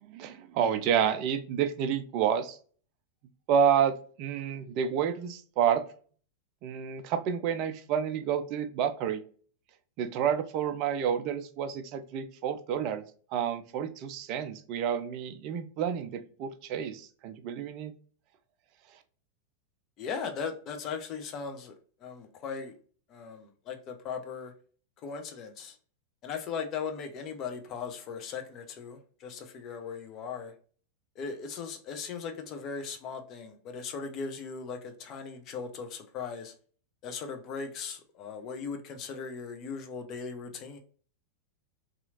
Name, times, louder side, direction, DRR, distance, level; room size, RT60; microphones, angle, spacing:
voice 1, 0.0-2.6 3.5-5.8 6.6-9.2 10.0-13.0 13.3-17.9, right 8 dB, 40° right, 0.4 m, -29 dB
voice 2, 20.0-21.7 22.0-22.7 23.1-24.5 25.0-25.8 26.2-30.5 31.2-36.5 37.0-40.8, left 5 dB, 35° left, 0.5 m, -38 dB
2.8 x 2.4 x 2.6 m
figure-of-eight pair, 90°, 0 cm